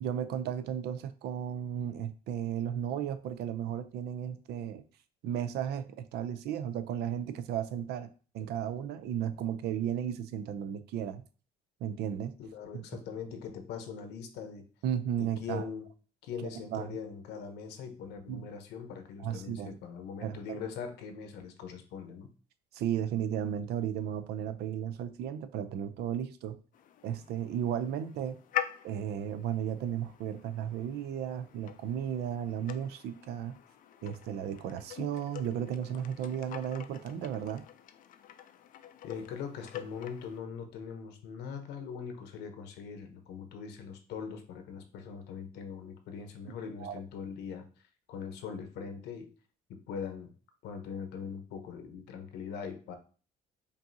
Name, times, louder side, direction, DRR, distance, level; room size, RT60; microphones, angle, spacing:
voice 1, 0.0-4.8 5.2-8.1 8.3-11.2 11.8-12.3 12.7-12.8 14.8-15.7 16.4-17.0 18.3-18.5 19.2-19.8 20.2-20.6 22.7-26.6 27.0-28.4 28.8-33.6 34.0-37.6 46.8-46.9, right 9 dB, 75° right, 0.5 m, -34 dB
voice 2, 12.4-14.7 15.2-15.9 16.2-22.3 39.0-47.6 48.1-49.3 49.7-50.3 50.6-53.0, left 6 dB, 80° left, 0.9 m, -41 dB
sound 1, 26.7-40.4, left 11 dB, 55° left, 0.4 m, -44 dB
5.2 x 2.7 x 2.7 m
cardioid pair, 110°, 17 cm